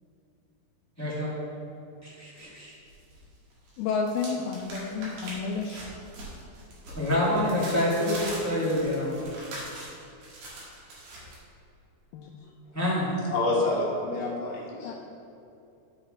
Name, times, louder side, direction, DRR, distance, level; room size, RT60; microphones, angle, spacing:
voice 1, 1.0-1.4 2.0-2.7 6.9-9.3 12.7-13.1, left 1 dB, 20° left, -8 dB, 0.5 m, -27 dB
sound 1, 2.4-3.2 3.5-11.4, right 1 dB, 65° right, 3.5 m, -42 dB
voice 2, 3.8-5.8 12.1-12.3 14.8-14.9, left 5 dB, 85° left, 1 dB, 2.4 m, -30 dB
voice 3, 13.3-14.9, left 2 dB, 65° left, -4 dB, 2.9 m, -27 dB
13.0 x 4.9 x 4.3 m, 2.7 s
omnidirectional pair, 4.5 m